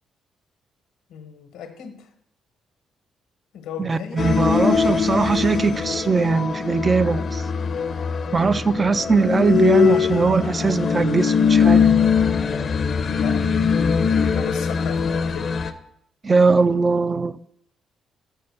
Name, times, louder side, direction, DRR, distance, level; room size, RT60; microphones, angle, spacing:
voice 1, 1.1-2.1 3.5-4.3 13.0-15.6, left 7 dB, 90° left, 1.2 m, -36 dB
voice 2, 3.8-7.4 8.3-11.9 16.2-17.3, right 4 dB, 30° right, 0.4 m, -20 dB
sound 1, 4.2-15.7, left 6 dB, 50° left, 0.6 m, -21 dB
6.7 x 5.5 x 6.7 m
cardioid pair, 90°, 0 cm